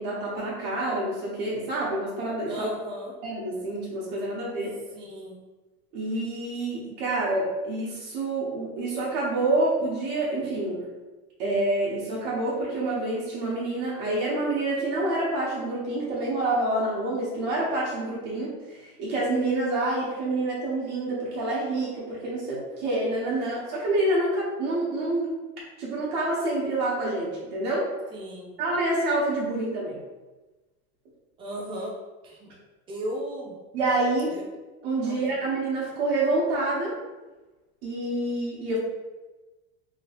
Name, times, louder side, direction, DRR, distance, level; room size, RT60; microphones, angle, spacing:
voice 1, 0.0-2.7 3.2-4.8 5.9-10.8 11.4-25.3 25.8-27.8 28.6-30.0 33.7-34.4 34.8-36.9 37.8-38.8, right 2 dB, 60° right, -6 dB, 1.0 m, -27 dB
voice 2, 2.5-3.2 4.9-5.4 28.1-28.6 31.4-32.0 32.2-32.5 32.9-33.6 34.3-34.4 35.0-35.2, equal, 15° right, -2 dB, 0.3 m, -35 dB
3.0 x 2.8 x 2.8 m, 1.2 s
cardioid pair, 170°, 33 cm